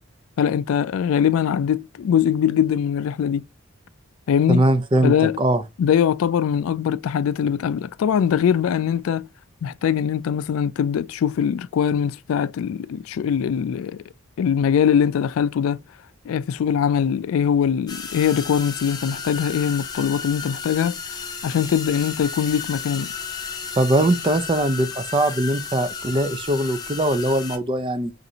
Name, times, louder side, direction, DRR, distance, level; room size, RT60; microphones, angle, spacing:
voice 1, 0.4-3.4 4.3-4.6 5.0-5.4 5.8-9.3 9.6-14.0 14.4-15.8 16.3-21.0 21.4-23.1, left 8 dB, 75° left, 0.3 m, -22 dB
voice 2, 4.5-5.6 23.8-28.1, right 1 dB, 25° right, 0.4 m, -21 dB
sound 1, 17.9-27.6, left 5 dB, 20° left, 0.6 m, -33 dB
5.0 x 2.5 x 2.7 m
head